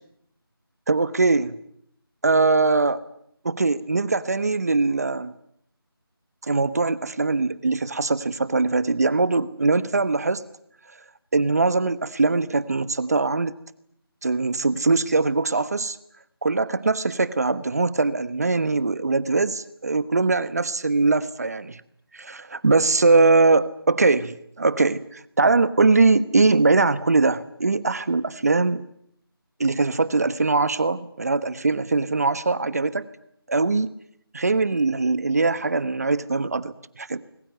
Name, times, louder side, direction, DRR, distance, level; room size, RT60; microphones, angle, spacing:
voice 1, 0.9-1.6 2.2-3.0 3.4-5.3 6.4-10.4 11.3-13.5 14.2-16.0 16.4-21.8 22.1-28.9 29.6-33.1 33.5-33.9 34.3-37.2, right 3 dB, 40° right, 16 dB, 1.2 m, -21 dB
24.5 x 22.0 x 9.3 m, 0.71 s
figure-of-eight pair, 165°, 13 cm